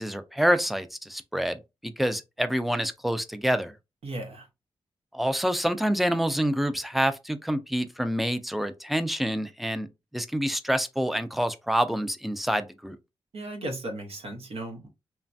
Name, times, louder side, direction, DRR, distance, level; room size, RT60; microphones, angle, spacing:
voice 1, 0.0-3.7 5.1-9.9 10.1-13.0, equal, ahead, 0.3 m, -27 dB
voice 2, 4.0-4.5 13.3-14.9, right 1 dB, 85° right, 0.8 m, -36 dB
3.2 x 2.2 x 2.5 m
wide cardioid pair, 110°, 10 cm